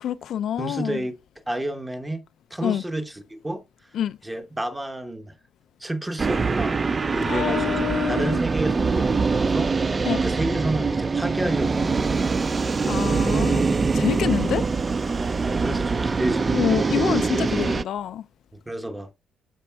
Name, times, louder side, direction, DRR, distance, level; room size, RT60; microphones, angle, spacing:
voice 1, 0.0-1.0 2.6-2.8 3.9-4.2 7.3-8.4 10.0-10.2 12.9-14.6 16.5-18.2, left 10 dB, 70° left, 0.3 m, -27 dB
voice 2, 0.6-1.2 1.5-2.2 2.5-3.6 4.2-5.4 5.8-6.8 7.1-12.2 15.4-16.9 18.5-19.1, right 1 dB, 10° right, 0.9 m, -31 dB
sound 1, 6.2-17.8, right 4 dB, 30° right, 0.3 m, -23 dB
13.0 x 4.3 x 2.2 m
cardioid pair, 90°, 0 cm